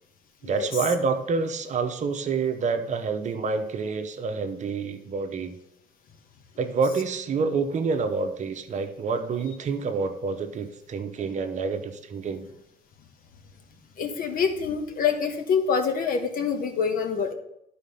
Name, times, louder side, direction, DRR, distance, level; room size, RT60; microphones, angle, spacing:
voice 1, 0.4-5.6 6.6-12.5, right 4 dB, 45° right, 7 dB, 0.9 m, -28 dB
voice 2, 13.9-17.3, left 6 dB, 55° left, 6 dB, 1.3 m, -26 dB
11.0 x 4.3 x 5.5 m, 0.82 s
cardioid pair, 110°, 17 cm